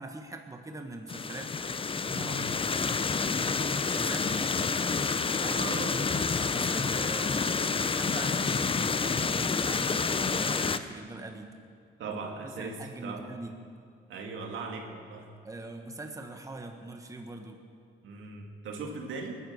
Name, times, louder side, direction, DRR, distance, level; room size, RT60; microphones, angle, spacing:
voice 1, 0.0-1.6 2.0-2.6 3.9-4.5 5.4-11.6 12.1-12.2 12.4-13.5 15.4-17.6, right 2 dB, 15° right, 4 dB, 1.3 m, -42 dB
sound 1, 1.1-10.8, left 5 dB, 25° left, 0.7 m, -29 dB
voice 2, 2.2-2.5 4.2-4.5 5.5-5.9 12.0-12.8 13.0-13.2 14.1-15.3 18.0-19.4, right 4 dB, 75° right, 2 dB, 2.4 m, -39 dB
20.0 x 10.0 x 6.5 m, 2.2 s
cardioid pair, 85°, 21 cm